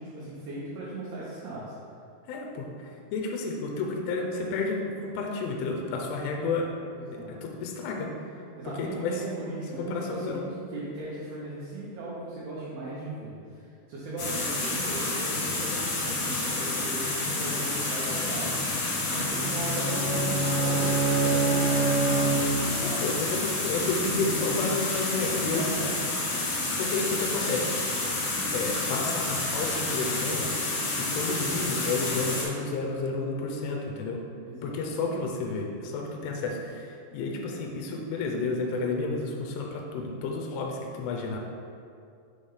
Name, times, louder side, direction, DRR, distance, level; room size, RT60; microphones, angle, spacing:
voice 1, 0.0-1.7 7.0-7.4 8.6-10.4 10.7-13.4 13.9-22.9 24.0-24.7 25.1-25.3 25.5-25.9 34.4-34.7, right 2 dB, 70° right, -8 dB, 2.8 m, -37 dB
voice 2, 2.3-6.7 7.1-8.4 8.8-9.2 9.8-10.5 22.7-25.8 26.7-27.7 28.5-30.5 30.9-34.2 34.6-41.4, left 3 dB, 85° left, 0 dB, 2.8 m, -31 dB
sound 1, 14.2-32.4, left 2 dB, 70° left, 1.4 m, -29 dB
Bowed string instrument, 19.4-23.0, right 3 dB, 90° right, 2.0 m, -26 dB
6.8 x 3.5 x 5.5 m, 2.5 s
omnidirectional pair, 4.7 m